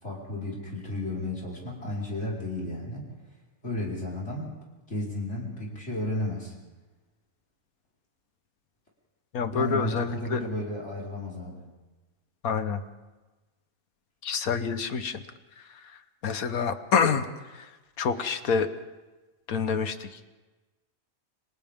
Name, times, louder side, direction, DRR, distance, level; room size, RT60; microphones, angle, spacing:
voice 1, 0.0-3.0 3.6-4.5 4.9-6.5 9.5-11.6, left 1 dB, 50° left, -5 dB, 5.0 m, -33 dB
voice 2, 9.3-10.4 12.4-12.8 14.2-15.2 15.6-17.7 18.0-18.7 19.5-20.3, left 6 dB, 75° left, 10 dB, 1.6 m, -28 dB
30.0 x 25.0 x 3.7 m, 1.2 s
omnidirectional pair, 1.5 m